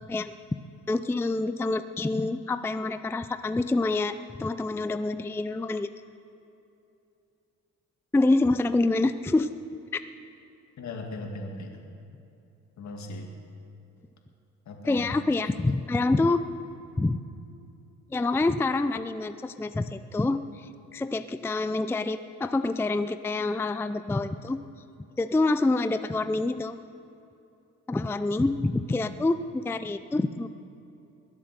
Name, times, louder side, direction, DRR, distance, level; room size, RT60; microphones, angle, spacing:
voice 1, 0.9-4.1 4.4-5.9 8.1-9.5 14.9-16.4 17.0-17.2 18.1-24.6 25.2-26.8 27.9-30.5, left 2 dB, 10° left, 11 dB, 0.4 m, -26 dB
voice 2, 10.8-11.8 12.8-13.3 14.7-15.1, left 2 dB, 65° left, 2 dB, 2.2 m, -38 dB
21.5 x 7.5 x 6.8 m, 2.7 s
cardioid pair, 90°, 30 cm